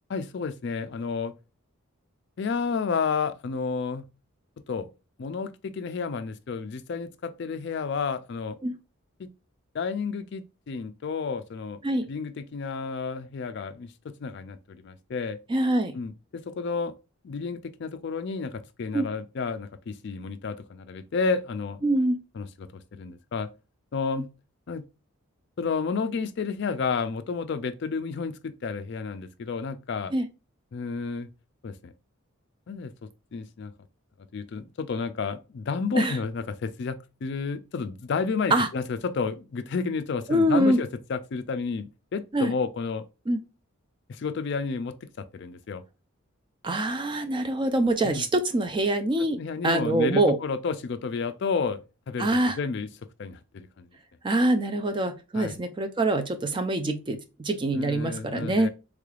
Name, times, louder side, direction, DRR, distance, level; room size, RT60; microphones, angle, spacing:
voice 1, 0.1-1.3 2.4-4.0 4.7-4.9 5.2-8.6 9.2-9.3 9.7-11.8 12.1-15.4 15.9-16.9 17.2-21.8 22.4-23.5 23.9-24.3 24.7-24.8 25.6-30.1 30.7-31.3 31.6-31.9 32.7-32.9 33.3-33.7 34.3-43.0 44.1-45.8 48.0-48.2 49.4-52.9 53.2-53.9 55.3-55.6 57.7-58.7, left 5 dB, 50° left, 0.3 m, -31 dB
voice 2, 15.5-15.9 18.9-19.1 21.8-22.2 30.1-30.3 35.9-36.2 38.5-38.7 40.3-40.8 42.3-42.5 43.3-43.4 46.6-49.4 49.6-50.4 52.2-52.6 54.2-58.7, right 1 dB, 20° right, 0.3 m, -24 dB
3.6 x 3.3 x 2.3 m
head